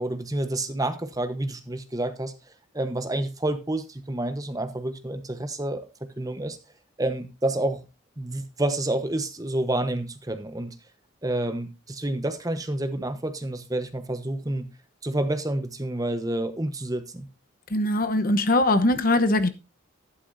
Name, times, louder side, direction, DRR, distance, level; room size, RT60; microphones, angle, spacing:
voice 1, 0.0-2.3 2.7-5.8 6.2-6.6 7.0-7.8 8.2-10.7 11.2-14.7 15.0-17.3, right 1 dB, 20° right, 1.0 m, -29 dB
voice 2, 17.7-19.5, left 1 dB, 45° left, 1.0 m, -21 dB
12.0 x 11.5 x 2.7 m
head